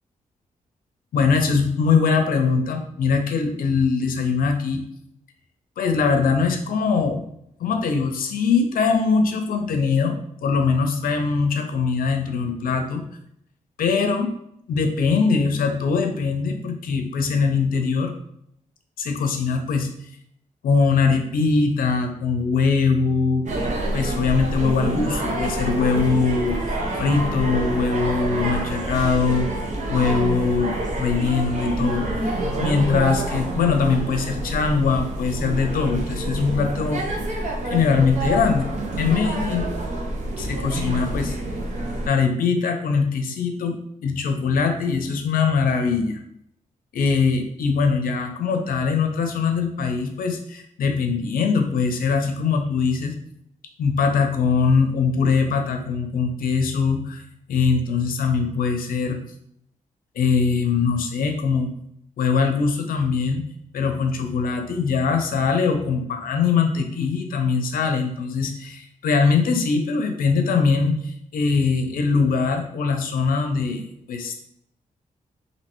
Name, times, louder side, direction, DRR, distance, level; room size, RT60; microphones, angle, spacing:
voice 1, 1.1-4.8 5.8-7.2 7.6-13.0 13.8-14.3 14.7-18.1 19.0-19.9 20.6-23.5 23.9-29.5 29.9-32.3 32.6-37.4 37.6-38.7 39.0-39.7 40.4-41.4 42.1-46.2 46.9-53.1 53.8-57.2 57.5-59.2 60.2-61.7 62.2-63.4 63.7-74.4, left 5 dB, 85° left, 5 dB, 0.5 m, -22 dB
sound 1, 23.5-42.1, right 1 dB, 55° right, 0.7 m, -27 dB
3.1 x 2.7 x 3.0 m, 0.74 s
cardioid pair, 110°, 14 cm